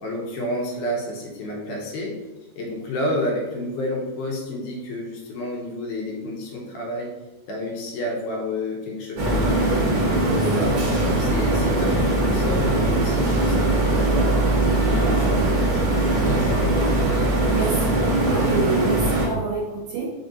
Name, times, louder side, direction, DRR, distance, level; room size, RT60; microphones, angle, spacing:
voice 1, 0.0-2.2 2.6-7.1 7.5-10.0 10.3-14.5 14.8-17.2, left 1 dB, 80° left, -2 dB, 2.3 m, -30 dB
sound 1, 9.2-19.3, right 2 dB, 85° right, 1.0 m, -21 dB
voice 2, 17.4-20.1, right 4 dB, 65° right, -5 dB, 2.0 m, -27 dB
5.2 x 2.5 x 3.8 m, 1.1 s
omnidirectional pair, 3.8 m